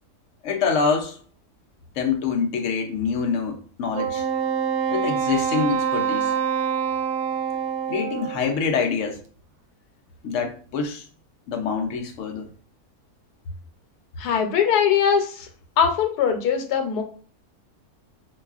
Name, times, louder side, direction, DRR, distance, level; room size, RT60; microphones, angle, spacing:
voice 1, 0.4-1.2 2.0-4.3 4.9-6.3 7.9-9.2 10.2-11.0 11.5-12.5, left 5 dB, 65° left, 0.8 m, -25 dB
Wind instrument woodwind instrument, 3.9-8.5, right 7 dB, 80° right, 1.1 m, -25 dB
voice 2, 14.2-15.5 15.8-17.0, left 7 dB, 90° left, 1.2 m, -21 dB
4.6 x 2.3 x 2.3 m
omnidirectional pair, 1.7 m